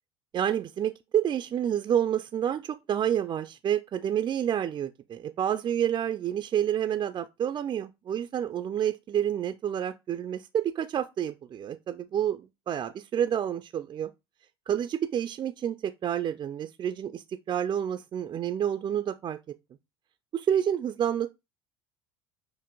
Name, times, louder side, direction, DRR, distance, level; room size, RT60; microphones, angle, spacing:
voice 1, 0.3-14.1 14.7-19.4 20.3-21.3, right 9 dB, 35° right, 0.4 m, -29 dB
5.9 x 2.5 x 2.2 m
hypercardioid pair, 80°, 13 cm